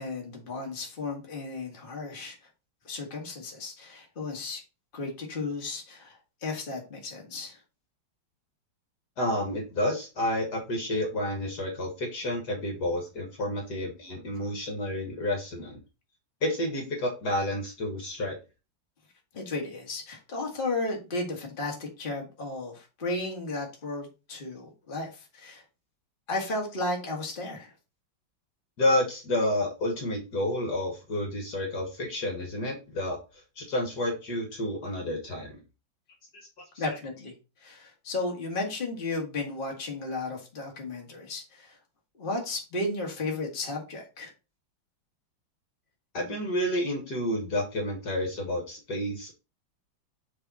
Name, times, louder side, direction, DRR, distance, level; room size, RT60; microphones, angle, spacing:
voice 1, 0.0-2.4 2.8-4.6 4.9-7.6 19.3-25.6 26.3-27.7 36.8-37.3 37.6-41.8 42.2-44.3, left 2 dB, 30° left, 1.6 m, -34 dB
voice 2, 9.2-15.8 16.4-18.4 28.8-33.2 33.6-35.6 36.9-37.0 46.1-49.3, left 1 dB, 60° left, 1.9 m, -30 dB
6.8 x 3.6 x 4.0 m
omnidirectional pair, 2.1 m